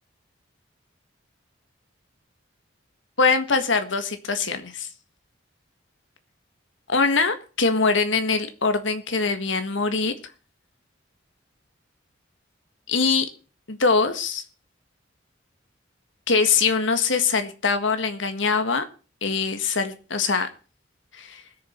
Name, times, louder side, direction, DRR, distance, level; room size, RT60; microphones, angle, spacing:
voice 1, 3.2-4.9 6.9-10.1 12.9-13.3 13.7-14.4 16.3-18.8 19.2-20.5 21.2-21.4, left 4 dB, 75° left, 8 dB, 1.6 m, -23 dB
20.0 x 7.0 x 4.4 m, 0.35 s
head